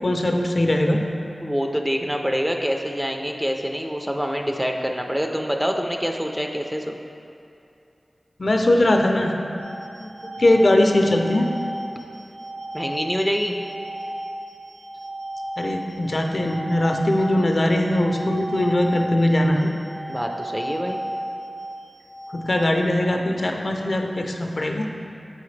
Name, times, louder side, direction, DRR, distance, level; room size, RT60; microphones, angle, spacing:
voice 1, 0.0-1.1 8.4-9.4 10.0-11.5 15.6-19.8 22.3-24.9, left 1 dB, 55° left, 3 dB, 0.5 m, -20 dB
voice 2, 1.4-6.9 12.7-13.6 20.1-21.0, equal, 10° right, 2 dB, 0.4 m, -26 dB
sound 1, 9.6-22.6, right 1 dB, 75° right, 1.1 m, -34 dB
7.6 x 4.8 x 3.2 m, 2.7 s
wide cardioid pair, 70°, 0 cm